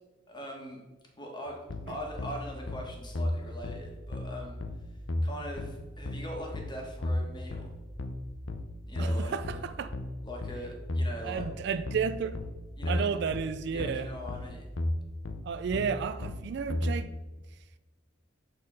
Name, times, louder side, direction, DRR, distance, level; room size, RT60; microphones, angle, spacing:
voice 1, 0.3-0.8 1.2-1.6 1.9-4.6 5.2-7.7 8.9-9.6 10.2-11.4 12.8-13.1 13.7-14.7, equal, 25° left, 1.5 m, -41 dB
sound 1, 1.7-16.9, left 1 dB, 90° left, 0.7 m, -34 dB
voice 2, 9.0-9.9 11.2-12.3 12.9-14.1 15.4-17.1, right 6 dB, 60° right, 0.3 m, -32 dB
6.7 x 4.2 x 5.3 m
head